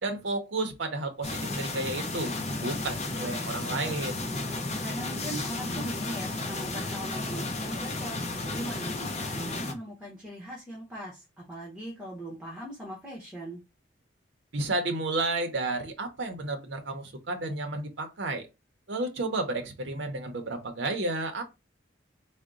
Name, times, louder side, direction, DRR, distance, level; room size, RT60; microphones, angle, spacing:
voice 1, 0.0-2.3 2.6-4.3 14.5-18.5 18.9-21.4, right 2 dB, 65° right, 0.6 m, -32 dB
sound 1, 1.2-9.7, left 2 dB, 35° left, 0.6 m, -33 dB
voice 2, 4.8-13.6, right 1 dB, 5° right, 0.8 m, -40 dB
3.7 x 2.1 x 3.6 m
head